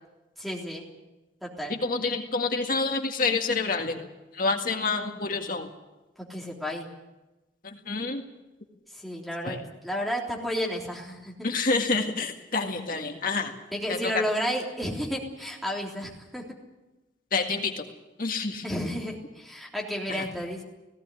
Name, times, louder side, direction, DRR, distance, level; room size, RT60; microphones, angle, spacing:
voice 1, 0.4-0.8 1.4-1.8 6.2-6.9 8.9-9.6 9.8-11.3 13.7-16.4 18.6-20.6, equal, ahead, -3 dB, 3.4 m, -32 dB
voice 2, 1.7-4.0 4.3-5.7 7.6-8.2 9.4-9.6 11.4-13.5 13.9-14.1 17.3-17.8 18.2-18.6 20.1-20.3, left 3 dB, 50° left, 3 dB, 1.9 m, -28 dB
19.0 x 16.5 x 9.8 m, 1.0 s
head